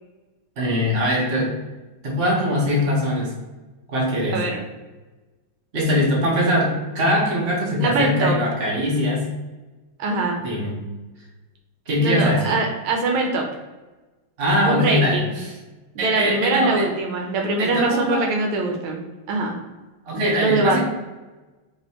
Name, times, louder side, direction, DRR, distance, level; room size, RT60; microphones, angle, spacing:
voice 1, 0.6-1.5 2.0-3.3 3.9-4.4 5.7-9.3 10.4-10.7 11.9-12.6 14.4-15.5 16.0-16.8 17.6-18.3 20.0-20.8, equal, 35° right, -3 dB, 1.1 m, -22 dB
voice 2, 7.8-8.3 10.0-10.4 12.0-13.4 14.6-15.4 15.9-19.0 19.3-19.6 20.1-20.8, right 2 dB, 80° right, 1 dB, 1.5 m, -22 dB
5.0 x 3.6 x 2.9 m, 1.2 s
omnidirectional pair, 2.3 m